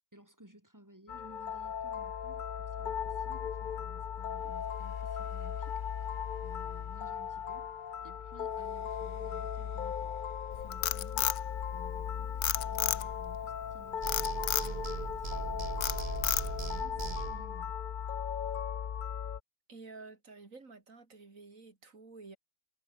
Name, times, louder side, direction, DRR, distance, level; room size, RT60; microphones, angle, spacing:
voice 1, 0.1-5.8 6.2-7.8 8.0-10.2 10.5-11.3 11.7-17.8, right 1 dB, 10° right, 4.5 m, -57 dB
sound 1, 1.1-19.4, left 8 dB, 50° left, 0.6 m, -37 dB
Frog, 10.5-12.0 12.4-13.3 14.1-14.7 15.2-15.5 15.8-16.7, left 12 dB, 75° left, 1.3 m, -31 dB
sound 2, 14.0-17.6, right 5 dB, 35° right, 0.6 m, -39 dB
voice 2, 19.7-22.4, right 3 dB, 55° right, 3.5 m, -51 dB
omnidirectional pair, 1.6 m